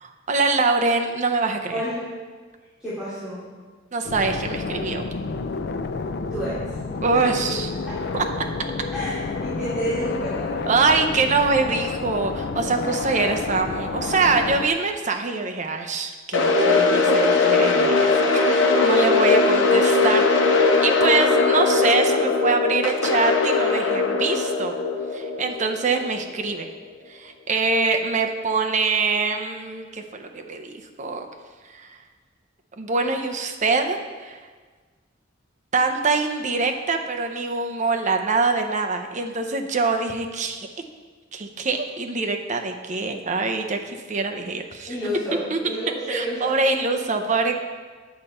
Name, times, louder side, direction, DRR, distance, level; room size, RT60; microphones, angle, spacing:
voice 1, 0.0-1.8 3.9-5.0 7.0-7.7 8.1-8.2 10.7-20.2 20.6-24.8 25.1-26.7 27.1-31.3 31.7-31.9 32.8-34.4 35.7-40.7 41.3-44.9 45.5-45.6 46.1-47.6, right 4 dB, 40° right, 4 dB, 0.7 m, -24 dB
voice 2, 1.7-2.1 2.8-3.4 6.3-6.5 7.1-7.3 7.9-8.0 8.9-10.6 44.9-46.5, equal, 5° right, -13 dB, 2.7 m, -29 dB
sound 1, 4.1-14.7, left 4 dB, 60° left, 0.4 m, -29 dB
sound 2, 16.3-26.4, left 3 dB, 80° left, 1.0 m, -20 dB
9.0 x 6.7 x 4.3 m, 1.4 s
head